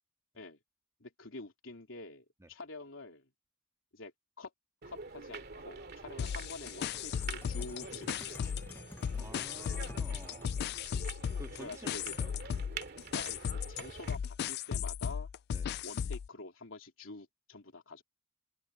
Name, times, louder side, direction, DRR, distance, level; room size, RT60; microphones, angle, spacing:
voice 1, 1.0-3.3 3.9-4.1 4.4-4.5 4.8-8.5 11.6-12.1 13.1-15.3 15.8-18.0, left 3 dB, 70° left, 3.3 m, -47 dB
sound 1, 4.8-14.2, right 4 dB, 55° right, 2.5 m, -47 dB
sound 2, 6.2-8.7 9.0-16.3, left 7 dB, 55° left, 0.3 m, -36 dB
sound 3, 6.7-10.8 12.4-13.2, left 1 dB, 10° left, 0.9 m, -54 dB
voice 2, 9.2-10.6 11.4-12.3 15.5-15.7, right 1 dB, 15° right, 1.9 m, -51 dB
open air
head